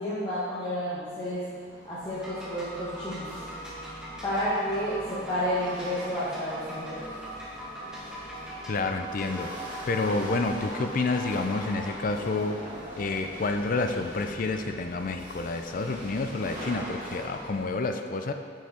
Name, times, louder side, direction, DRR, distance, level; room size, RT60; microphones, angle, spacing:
voice 1, 0.0-1.6 1.8-3.4 4.2-7.0, equal, 20° left, -12 dB, 1.3 m, -31 dB
Chatter / Hiss / Rattle, 0.8-17.6, right 1 dB, 45° right, 1.8 m, -42 dB
sound 1, 2.1-12.0, right 1 dB, 5° right, 1.4 m, -41 dB
voice 2, 8.7-9.5 9.9-12.6 13.0-18.3, left 3 dB, 45° left, 6 dB, 0.4 m, -29 dB
6.1 x 5.7 x 4.3 m, 2.1 s
head